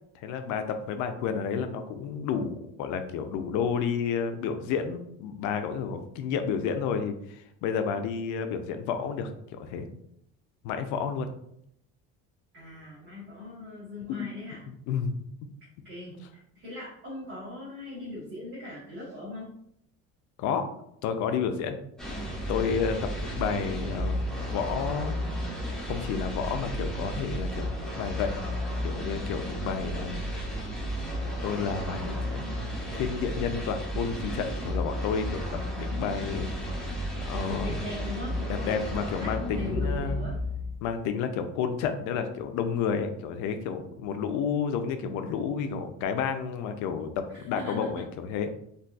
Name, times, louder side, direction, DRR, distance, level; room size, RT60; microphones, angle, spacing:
voice 1, 0.2-9.9 10.6-11.3 14.1-14.3 14.9-15.1 20.4-20.7 21.0-21.8 22.5-25.1 25.8-28.3 28.8-30.2 31.4-32.4 32.9-35.4 35.8-36.5 37.3-37.8 38.5-40.2 40.8-48.5, left 6 dB, 80° left, 8 dB, 0.5 m, -31 dB
voice 2, 12.5-14.6 15.8-19.5 37.4-40.3 47.3-48.0, left 2 dB, 45° right, -9 dB, 1.3 m, -40 dB
sound 1, 22.0-41.0, equal, ahead, 0.5 m, -33 dB
3.9 x 2.4 x 2.3 m, 0.73 s
cardioid pair, 155°, 30 cm